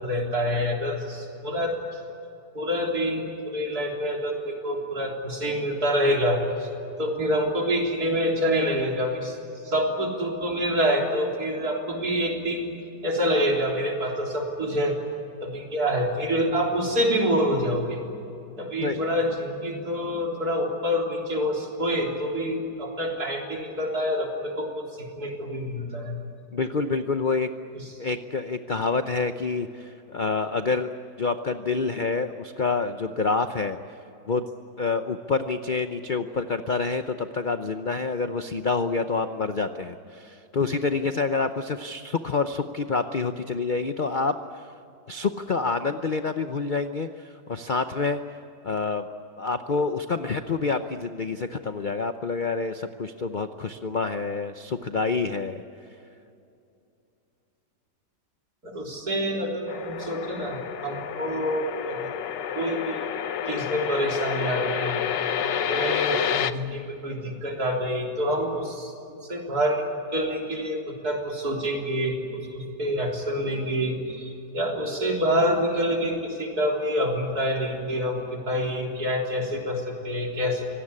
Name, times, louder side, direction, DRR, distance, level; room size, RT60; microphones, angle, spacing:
voice 1, 0.0-2.0 2.5-6.7 7.0-9.4 9.6-12.7 13.0-15.0 15.4-18.0 18.6-26.2 58.6-62.1 62.5-63.0 63.5-65.0 65.7-69.8 70.1-80.6, equal, 60° right, 0 dB, 4.1 m, -27 dB
voice 2, 26.5-27.5 28.0-30.9 31.2-33.8 34.3-34.5 34.8-44.7 45.1-48.2 48.6-49.1 49.4-55.6, left 4 dB, 50° left, 9 dB, 0.6 m, -27 dB
sound 1, 59.7-66.5, left 8 dB, 75° left, 1.5 m, -29 dB
25.5 x 17.5 x 9.9 m, 2.7 s
omnidirectional pair, 1.9 m